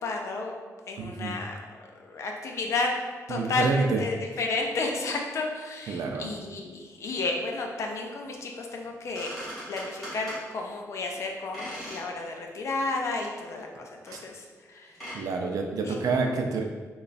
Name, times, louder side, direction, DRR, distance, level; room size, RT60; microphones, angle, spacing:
voice 1, 0.0-0.5 0.9-3.0 3.3-3.7 4.0-9.3 9.7-14.9 15.8-16.1, left 3 dB, 55° left, 1 dB, 0.5 m, -32 dB
voice 2, 1.0-1.4 3.3-4.0 5.9-6.3 14.1-14.2 15.1-16.6, right 4 dB, 75° right, 3 dB, 0.4 m, -28 dB
sound 1, 8.8-8.9 9.1-10.4 11.5-12.1 12.5-12.6 13.2-13.3 14.1-14.2 14.9-15.2, equal, ahead, 1.5 m, -40 dB
3.2 x 2.3 x 4.0 m, 1.5 s
wide cardioid pair, 175°, 6 cm